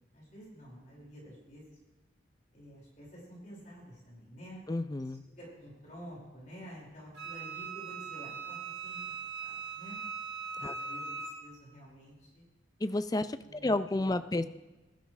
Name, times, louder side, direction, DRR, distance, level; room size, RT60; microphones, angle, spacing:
voice 1, 0.1-1.8 2.5-4.6 5.0-9.1 9.4-10.0 10.6-12.4 13.4-13.7 14.0-14.5, equal, 45° left, -4 dB, 5.1 m, -50 dB
voice 2, 4.7-5.2 10.6-10.8 12.8-14.4, left 2 dB, 20° left, 13 dB, 0.4 m, -31 dB
Wind instrument woodwind instrument, 7.1-11.4, right 5 dB, 65° right, 2.6 m, -40 dB
19.5 x 12.0 x 3.2 m, 1.1 s
head